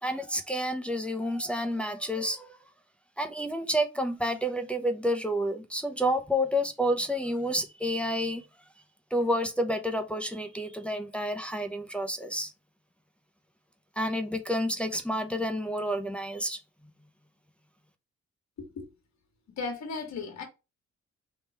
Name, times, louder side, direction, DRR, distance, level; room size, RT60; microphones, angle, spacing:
voice 1, 0.0-2.5 3.2-8.4 9.1-12.5 14.0-16.6, equal, 5° left, 0.7 m, -29 dB
voice 2, 19.6-20.4, left 4 dB, 70° left, 1.7 m, -36 dB
3.7 x 3.1 x 4.3 m
cardioid pair, 90°, 29 cm